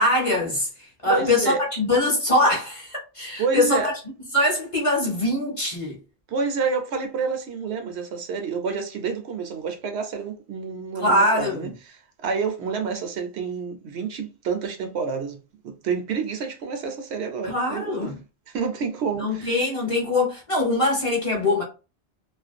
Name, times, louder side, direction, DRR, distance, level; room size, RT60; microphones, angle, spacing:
voice 1, 0.0-3.8 4.3-6.0 11.0-11.7 17.4-18.1 19.2-21.6, left 2 dB, 35° left, 0.8 m, -23 dB
voice 2, 1.0-1.6 3.4-4.0 6.3-15.4 15.6-18.1 18.5-19.6, right 5 dB, 75° right, 0.9 m, -28 dB
2.4 x 2.1 x 2.4 m
omnidirectional pair, 1.1 m